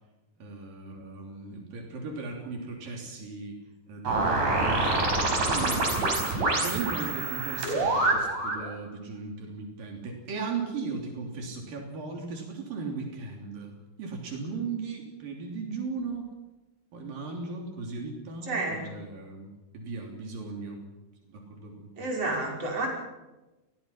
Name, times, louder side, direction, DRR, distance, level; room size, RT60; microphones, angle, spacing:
voice 1, 0.4-3.6 3.9-5.1 5.5-5.9 6.5-16.3 16.9-20.8 21.3-22.1, right 4 dB, 90° right, 1 dB, 5.0 m, -37 dB
sound 1, 4.0-8.6, right 2 dB, 65° right, 6.7 m, -26 dB
voice 2, 18.5-18.8 22.0-22.9, right 2 dB, 45° right, -1 dB, 6.6 m, -30 dB
29.0 x 21.5 x 5.8 m, 1.1 s
omnidirectional pair, 3.8 m